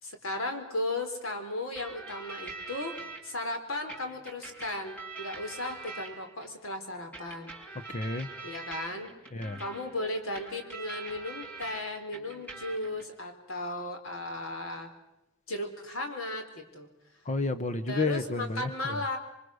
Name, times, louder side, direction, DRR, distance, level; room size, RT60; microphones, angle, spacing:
voice 1, 0.0-3.0 3.2-7.5 8.4-9.1 9.6-14.9 15.5-16.9 17.9-19.2, left 2 dB, 80° left, 5 dB, 4.1 m, -36 dB
sound 1, 1.8-3.2 3.9-6.5 7.1-11.8 12.1-13.0, right 4 dB, 10° left, 5.3 m, -44 dB
voice 2, 7.9-8.3 9.3-9.6 17.2-19.0, left 3 dB, 35° left, 10 dB, 1.1 m, -31 dB
28.0 x 24.0 x 6.5 m, 0.90 s
head